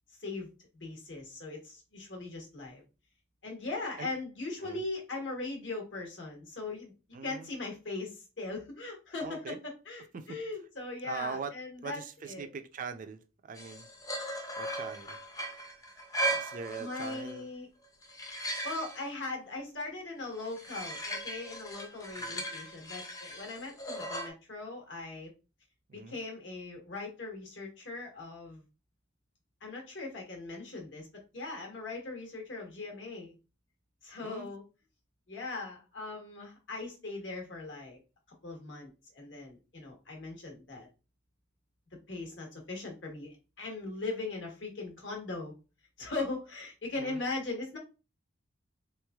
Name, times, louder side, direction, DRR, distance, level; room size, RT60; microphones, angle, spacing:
voice 1, 0.7-2.8 3.4-6.9 7.2-12.5 16.8-17.7 18.6-25.3 25.9-28.6 29.6-31.1 31.3-33.4 34.0-34.6 35.3-38.0 38.4-40.9 42.1-45.5 46.0-47.8, left 3 dB, 70° left, 1 dB, 1.2 m, -39 dB
voice 2, 7.1-7.5 9.2-9.6 10.1-10.4 11.0-11.6 11.8-13.9 14.6-15.2 16.3-17.5 22.2-22.5 25.9-26.2 34.2-34.5 47.0-47.2, right 5 dB, 45° right, 10 dB, 0.4 m, -42 dB
sound 1, 13.6-17.4 17.8-19.0 20.4-24.3, right 1 dB, 20° left, 0.5 m, -37 dB
3.5 x 3.1 x 2.3 m, 0.31 s
head